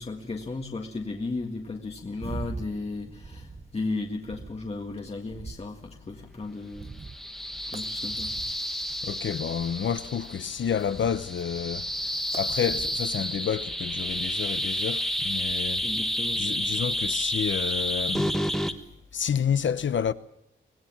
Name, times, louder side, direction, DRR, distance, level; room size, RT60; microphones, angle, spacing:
voice 1, 0.0-6.9 7.7-8.3 15.4-15.5 15.8-16.5, left 3 dB, 30° left, 1.8 m, -35 dB
sound 1, 2.2-17.3, right 4 dB, 30° right, 1.0 m, -45 dB
sound 2, 7.0-18.7, equal, ahead, 1.4 m, -30 dB
voice 2, 9.0-11.9 12.3-15.8 16.4-18.4 19.1-20.1, left 8 dB, 70° left, 0.9 m, -29 dB
24.5 x 19.0 x 7.3 m
wide cardioid pair, 160°, 20 cm